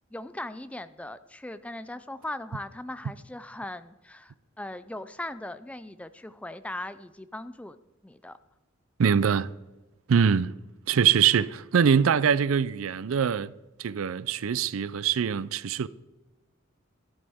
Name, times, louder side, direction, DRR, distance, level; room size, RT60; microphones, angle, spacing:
voice 1, 0.1-7.8 8.0-8.4, left 1 dB, 5° left, 0.4 m, -39 dB
voice 2, 9.0-9.5 10.1-10.5 10.9-13.5 13.8-15.9, right 7 dB, 90° right, 0.4 m, -23 dB
12.5 x 11.5 x 3.5 m
head